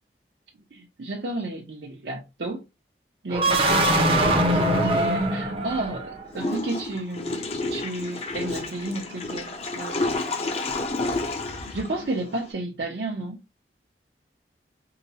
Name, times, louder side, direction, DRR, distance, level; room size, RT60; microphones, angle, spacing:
voice 1, 0.7-2.6 3.2-10.5 11.7-13.4, right 2 dB, 75° right, 0.7 m, -33 dB
sound 1, 3.3-6.3, right 1 dB, 30° right, 0.6 m, -22 dB
Water / Toilet flush, 6.3-12.5, left 2 dB, 35° left, 0.5 m, -30 dB
4.8 x 2.0 x 2.7 m
head